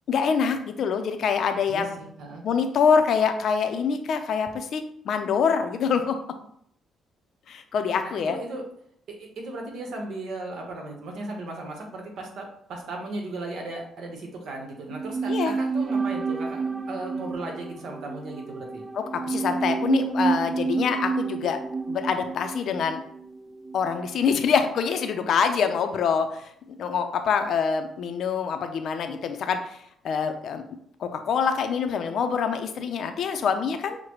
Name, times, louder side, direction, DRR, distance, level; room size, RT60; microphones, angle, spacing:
voice 1, 0.1-2.0 2.4-6.2 7.5-8.4 15.3-15.5 19.0-21.6 21.9-23.0 23.7-26.5 26.8-29.8 30.0-30.6 31.0-34.0, left 6 dB, 65° left, 7 dB, 0.5 m, -25 dB
voice 2, 1.7-2.4 8.0-8.7 9.1-18.8, right 2 dB, 70° right, 1 dB, 1.0 m, -36 dB
sound 1, 14.9-24.2 24.5-24.6, right 4 dB, 25° right, 0.3 m, -30 dB
6.4 x 2.1 x 3.0 m, 0.67 s
cardioid pair, 90°, 0 cm